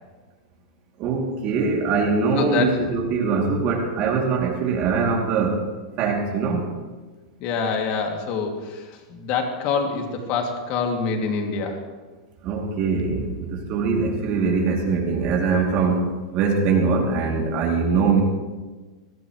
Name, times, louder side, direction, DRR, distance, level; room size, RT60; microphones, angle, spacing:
voice 1, 1.0-5.6 6.0-6.7 12.4-18.2, right 4 dB, 45° right, -1 dB, 2.8 m, -22 dB
voice 2, 2.4-2.7 7.4-8.8 9.1-11.8, left 5 dB, 45° left, 2 dB, 2.5 m, -25 dB
20.5 x 15.0 x 3.2 m, 1.3 s
hypercardioid pair, 125°, 3 cm